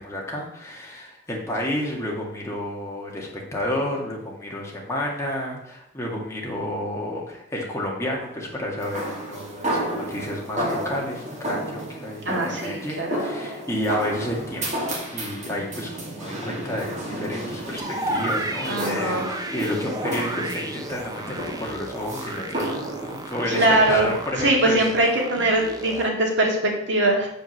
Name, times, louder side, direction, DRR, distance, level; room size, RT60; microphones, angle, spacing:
voice 1, 0.0-24.8, left 1 dB, 15° left, -2 dB, 2.1 m, -30 dB
sound 1, 8.8-24.3, right 1 dB, 40° right, 2.3 m, -32 dB
voice 2, 12.3-13.2 18.7-19.3 23.5-24.1 24.4-27.3, right 1 dB, 65° right, 0 dB, 2.2 m, -22 dB
sound 2, 17.8-26.1, right 1 dB, 20° right, 0.9 m, -33 dB
7.3 x 5.3 x 6.5 m, 0.76 s
head